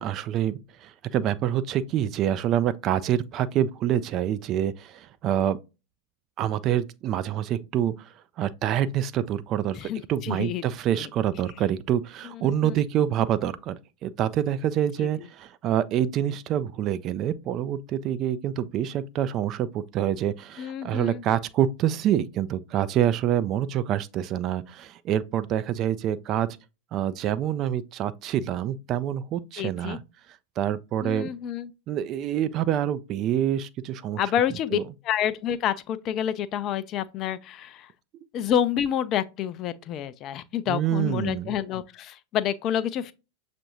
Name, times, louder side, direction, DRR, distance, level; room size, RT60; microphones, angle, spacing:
voice 1, 0.0-5.6 6.4-13.8 14.0-26.5 26.9-30.0 30.6-31.3 31.9-34.2 34.7-34.8 40.7-41.5, right 10 dB, 35° right, 0.3 m, -26 dB
voice 2, 9.7-10.6 11.0-11.1 12.4-12.8 15.0-15.1 20.6-21.2 29.6-30.0 31.0-31.7 34.2-37.9 38.3-43.1, left 10 dB, 35° left, 0.4 m, -28 dB
6.7 x 2.5 x 2.9 m
figure-of-eight pair, 90°, 0 cm